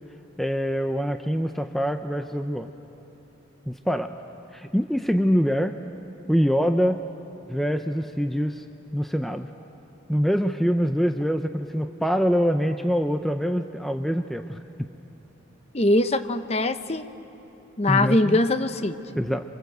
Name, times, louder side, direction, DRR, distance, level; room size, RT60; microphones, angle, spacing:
voice 1, 0.4-2.7 3.7-4.1 4.5-5.7 6.3-7.0 7.5-8.6 8.9-9.5 10.1-14.9 17.9-18.4 19.2-19.4, equal, ahead, 6 dB, 0.6 m, -24 dB
voice 2, 15.7-17.0 17.8-19.0, left 2 dB, 30° left, 10 dB, 0.8 m, -22 dB
27.0 x 24.5 x 8.0 m, 2.9 s
head